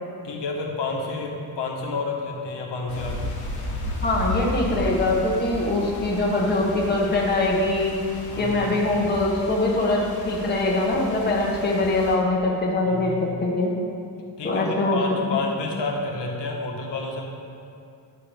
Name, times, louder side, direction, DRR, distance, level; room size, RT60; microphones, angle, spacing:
voice 1, 0.2-3.2 8.3-8.7 12.8-13.4 14.4-17.2, left 3 dB, 85° left, 0 dB, 1.3 m, -30 dB
sound 1, 2.9-12.1, left 1 dB, 45° left, 1.4 m, -34 dB
voice 2, 4.0-7.9 8.4-13.7 14.4-15.0, left 2 dB, 25° left, -3 dB, 1.1 m, -23 dB
10.0 x 6.6 x 3.5 m, 2.5 s
wide cardioid pair, 165°, 41 cm